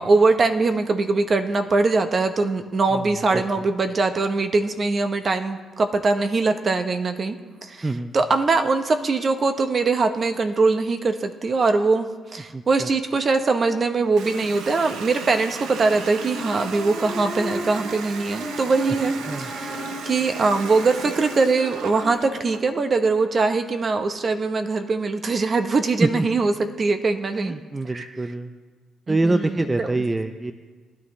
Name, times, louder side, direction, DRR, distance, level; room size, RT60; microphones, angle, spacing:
voice 1, 0.0-7.4 7.6-27.5 27.9-28.1 29.1-29.9, right 3 dB, 40° right, 7 dB, 0.9 m, -22 dB
voice 2, 2.9-3.4 7.8-8.2 12.5-12.9 19.3-19.5 26.0-26.3 27.3-28.5 29.1-30.5, right 2 dB, 20° right, 8 dB, 0.5 m, -25 dB
Water tap faucet, 14.2-22.7, right 6 dB, 85° right, 0.7 m, -36 dB
sound 1, 15.8-22.1, left 2 dB, ahead, 2.0 m, -36 dB
19.0 x 11.0 x 3.1 m, 1.4 s
cardioid pair, 90°, 0 cm